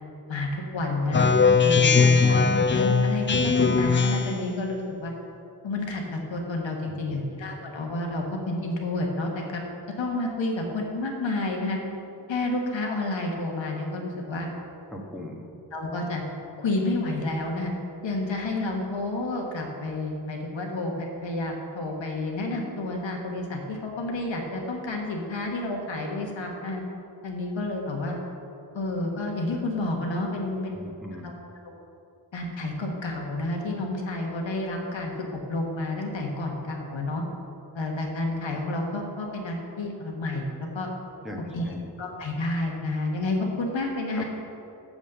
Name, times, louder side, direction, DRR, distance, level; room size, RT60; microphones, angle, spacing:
voice 1, 0.3-1.3 1.6-2.4 2.7-5.1 5.6-9.6 10.0-11.8 12.3-14.5 15.7-16.2 16.6-17.7 18.0-26.8 27.2-28.1 28.7-30.9 31.2-31.3 32.3-35.1 35.5-37.2 37.7-40.9 41.5-41.6 42.0-44.2, left 2 dB, 75° left, 1 dB, 1.5 m, -30 dB
Speech synthesizer, 1.1-4.5, left 4 dB, 25° left, 0.5 m, -20 dB
voice 2, 6.8-7.2 14.9-15.5 30.7-31.4 41.2-41.9 44.1-44.2, left 1 dB, ahead, -1 dB, 1.2 m, -40 dB
7.2 x 6.2 x 6.8 m, 2.7 s
cardioid pair, 55°, 45 cm